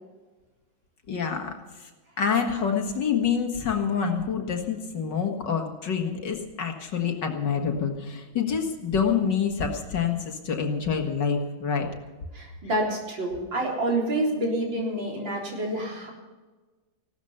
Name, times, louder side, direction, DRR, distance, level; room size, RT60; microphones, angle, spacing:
voice 1, 1.1-1.5 1.8-1.9 2.2-11.9, left 6 dB, 60° left, 3 dB, 2.3 m, -27 dB
voice 2, 12.3-16.1, right 1 dB, 65° right, -2 dB, 4.6 m, -28 dB
16.5 x 13.0 x 5.7 m, 1.3 s
omnidirectional pair, 2.2 m